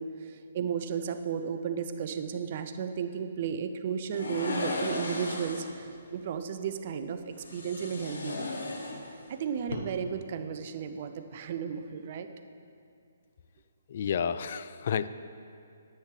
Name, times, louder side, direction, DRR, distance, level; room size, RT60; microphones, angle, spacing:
voice 1, 0.0-8.5 9.3-12.3, right 7 dB, 45° right, 8 dB, 0.5 m, -34 dB
sound 1, 4.1-5.8 7.4-9.3 9.6-9.8, left 2 dB, 70° left, 1.3 m, -35 dB
voice 2, 13.9-15.1, left 7 dB, 50° left, 14 dB, 0.3 m, -30 dB
10.5 x 8.2 x 3.3 m, 2.4 s
figure-of-eight pair, 140°, 0 cm